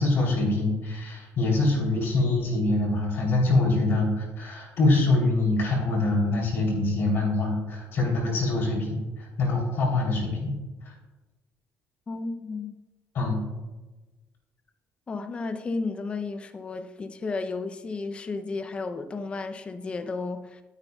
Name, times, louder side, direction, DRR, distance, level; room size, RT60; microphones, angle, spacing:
voice 1, 0.0-10.5 10.8-10.9 13.1-13.5, left 2 dB, 50° left, -2 dB, 3.2 m, -24 dB
voice 2, 12.1-12.8 15.1-20.6, left 3 dB, 25° left, 9 dB, 0.6 m, -33 dB
12.0 x 9.9 x 2.3 m, 1.2 s
cardioid pair, 155°, 5 cm